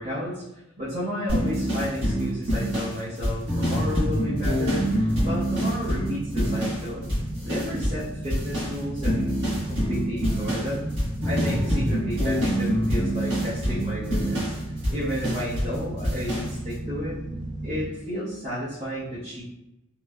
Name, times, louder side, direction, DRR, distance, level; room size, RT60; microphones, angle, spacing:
voice 1, 0.0-7.1 7.4-9.3 9.7-10.9 11.2-14.6 14.9-17.2 17.6-19.4, equal, 35° right, -11 dB, 0.7 m, -32 dB
sound 1, 1.3-6.8 7.1-8.0 8.3-15.8 16.0-16.5, equal, 65° right, 1.3 m, -26 dB
sound 2, 4.4-17.9, right 1 dB, 20° left, 0.7 m, -35 dB
3.1 x 2.1 x 2.2 m, 0.94 s
head